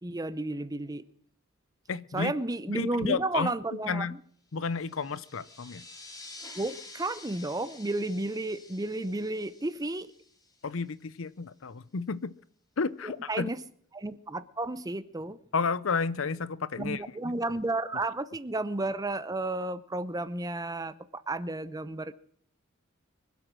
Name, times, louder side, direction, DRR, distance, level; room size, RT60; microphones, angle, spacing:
voice 1, 0.0-1.0 2.1-4.1 6.5-10.1 13.0-13.6 13.9-15.4 16.8-20.9 21.3-22.1, right 2 dB, 20° right, 0.7 m, -32 dB
voice 2, 1.9-2.3 2.7-3.5 3.9-4.2 4.5-5.8 10.6-12.3 12.8-13.5 15.5-17.0, left 5 dB, 65° left, 0.6 m, -31 dB
sound 1, 4.6-10.9, left 2 dB, 20° left, 2.2 m, -49 dB
24.5 x 8.1 x 6.1 m
head